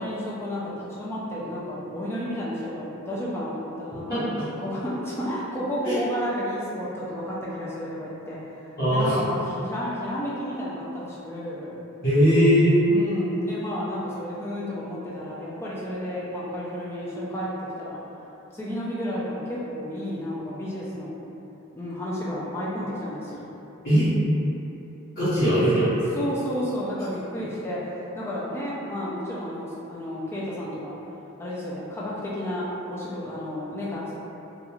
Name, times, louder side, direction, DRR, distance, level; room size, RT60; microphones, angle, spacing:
voice 1, 0.0-4.2 4.6-11.8 12.9-18.0 18.5-21.2 21.7-23.4 25.5-25.7 26.2-31.0 31.4-34.1, equal, 10° left, -7 dB, 0.4 m, -32 dB
voice 2, 4.1-4.4 5.8-6.0 8.8-9.2 12.0-12.8 23.8-24.1 25.1-26.3, equal, 40° left, -19 dB, 1.1 m, -20 dB
3.0 x 2.4 x 2.3 m, 2.9 s
head